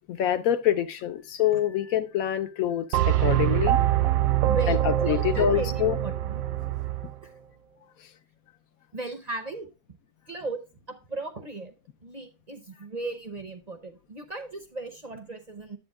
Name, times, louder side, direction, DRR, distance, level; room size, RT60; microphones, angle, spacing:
voice 1, 0.1-3.8 4.7-6.0, left 10 dB, 70° left, 0.9 m, -26 dB
sound 1, 2.9-7.1, right 12 dB, 70° right, 0.9 m, -24 dB
voice 2, 4.5-6.4 7.2-7.3 8.9-9.7 10.3-10.6 10.9-11.7 12.0-15.8, right 3 dB, 40° right, 0.5 m, -36 dB
10.0 x 7.8 x 2.3 m
omnidirectional pair, 1.8 m